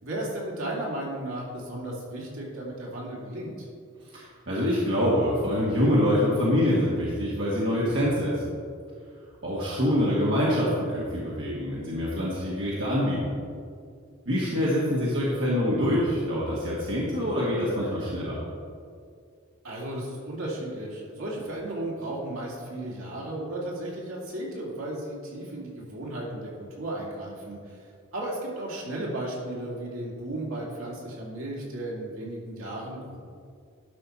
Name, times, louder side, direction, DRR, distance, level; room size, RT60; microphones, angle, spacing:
voice 1, 0.0-3.7 19.6-26.5 26.8-33.2, right 1 dB, 80° right, -4 dB, 2.4 m, -34 dB
voice 2, 4.1-8.3 9.4-13.3 14.2-18.4, equal, 60° right, -7 dB, 1.7 m, -25 dB
11.5 x 5.5 x 4.3 m, 2.2 s
head